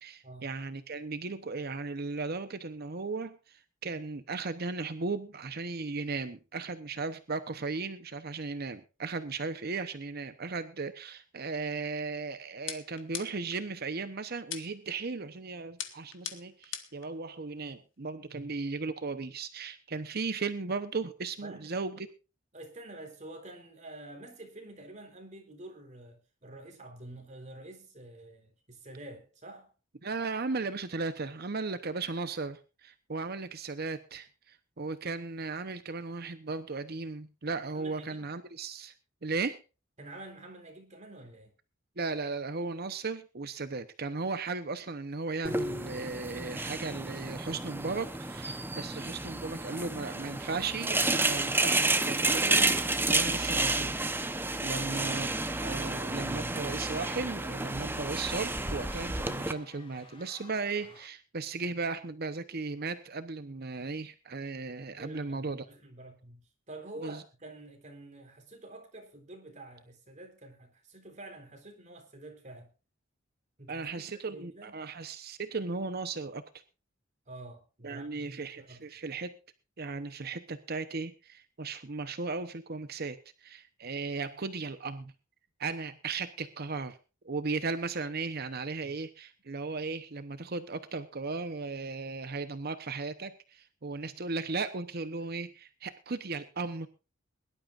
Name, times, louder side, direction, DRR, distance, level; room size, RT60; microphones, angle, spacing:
voice 1, 0.0-22.1 30.0-38.9 39.2-39.6 42.0-53.9 54.6-65.7 67.0-67.2 73.7-76.4 77.8-79.3 79.8-85.1 85.6-87.0 87.2-96.9, right 4 dB, 55° right, 0.9 m, -36 dB
sound 1, 12.7-13.6 14.5-15.0 15.8-17.1, left 10 dB, 85° left, 1.7 m, -40 dB
voice 2, 21.4-22.0 22.5-29.7 37.7-38.3 40.0-41.5 54.7-55.2 65.0-72.7 73.6-74.8 77.3-78.8 88.8-89.0, right 2 dB, 40° right, 3.9 m, -48 dB
sound 2, 45.4-59.5, right 2 dB, 10° right, 0.9 m, -31 dB
sound 3, 49.9-61.1, left 3 dB, 30° left, 2.4 m, -56 dB
22.5 x 12.0 x 2.5 m
head